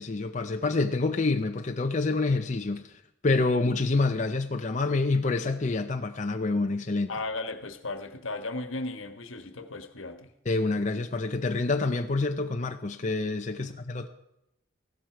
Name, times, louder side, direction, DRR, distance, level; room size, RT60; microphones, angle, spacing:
voice 1, 0.0-7.1 10.4-14.1, left 3 dB, 35° left, 0.6 m, -27 dB
voice 2, 7.1-10.3 13.6-13.7, left 2 dB, 80° left, 1.3 m, -36 dB
15.5 x 12.5 x 4.6 m
head